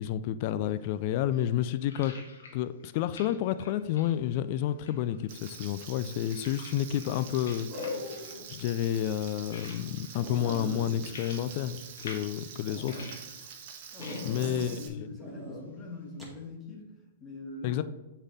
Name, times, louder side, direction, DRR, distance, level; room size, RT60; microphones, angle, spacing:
voice 1, 0.0-2.1 2.5-13.1 14.2-15.1 17.6-17.8, left 11 dB, 50° left, 13 dB, 0.3 m, -30 dB
sound 1, 0.8-16.5, left 4 dB, 80° left, 1.6 m, -52 dB
Frying (food), 5.3-14.9, right 7 dB, 55° right, 1.3 m, -46 dB
sound 2, 7.7-8.5 8.9-9.0 9.5-9.6 9.9-10.0 10.2-12.2 12.7-13.1 14.0-14.8 15.2-15.6 16.2-16.4, left 2 dB, 5° left, 2.5 m, -40 dB
voice 2, 13.9-16.9 17.2-17.8, left 3 dB, 20° left, -1 dB, 1.8 m, -43 dB
8.0 x 4.1 x 4.0 m, 1.1 s
hypercardioid pair, 120°, 0 cm